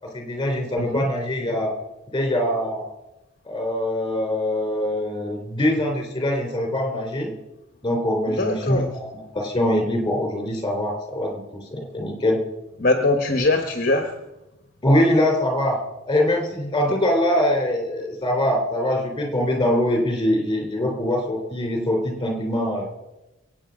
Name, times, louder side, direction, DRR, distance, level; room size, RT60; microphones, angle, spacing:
voice 1, 0.0-1.7 2.1-2.8 3.5-7.3 7.8-12.4 14.8-15.8 16.1-22.9, left 1 dB, 20° left, 2 dB, 3.5 m, -23 dB
voice 2, 8.3-8.9 12.8-14.1, left 2 dB, 45° left, 5 dB, 1.2 m, -21 dB
23.0 x 8.8 x 5.2 m, 0.97 s
head